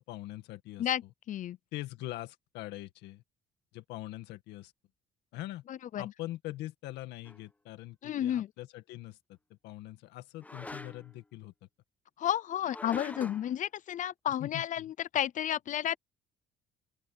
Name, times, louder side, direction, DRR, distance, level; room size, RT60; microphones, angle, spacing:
voice 1, 0.0-1.1 1.7-3.2 3.7-4.7 5.3-5.6 6.0-9.4 9.6-11.5 14.4-14.8, left 16 dB, 85° left, 1.9 m, -43 dB
voice 2, 5.7-6.0 8.0-8.5 12.2-16.0, left 11 dB, 50° left, 0.5 m, -32 dB
sound 1, 7.2-7.4 10.4-11.2 12.6-13.5, left 2 dB, 10° left, 0.8 m, -44 dB
open air
cardioid pair, 110°, 17 cm